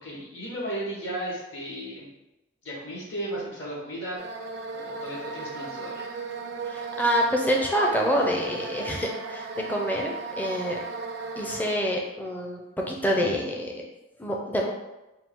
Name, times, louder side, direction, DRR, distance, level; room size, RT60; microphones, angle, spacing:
voice 1, 0.0-2.0 2.6-4.2 4.7-6.1, right 1 dB, 65° left, -5 dB, 1.4 m, -35 dB
sound 1, 4.2-11.7, right 4 dB, 55° right, 0.3 m, -36 dB
voice 2, 6.7-10.8 11.4-13.7 14.2-14.7, equal, 10° left, -1 dB, 0.4 m, -27 dB
4.3 x 2.4 x 3.5 m, 1.0 s
head